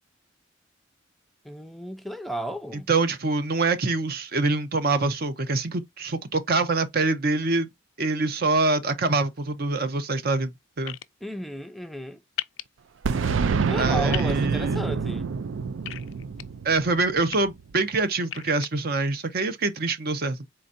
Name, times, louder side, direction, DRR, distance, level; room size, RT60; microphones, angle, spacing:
voice 1, 1.4-2.9 11.2-12.2 13.7-15.3, equal, ahead, 0.4 m, -34 dB
voice 2, 2.7-7.7 8.0-10.5 10.8-11.0 13.8-14.8 16.6-20.5, right 3 dB, 55° right, 0.7 m, -25 dB
sound 1, 10.9-11.0 12.4-12.6 14.1-14.3 15.9-16.4 17.1-17.4 18.2-18.7, left 14 dB, 85° left, 0.4 m, -33 dB
Boom, 13.0-17.7, right 5 dB, 85° right, 0.4 m, -27 dB
4.3 x 3.8 x 2.6 m
head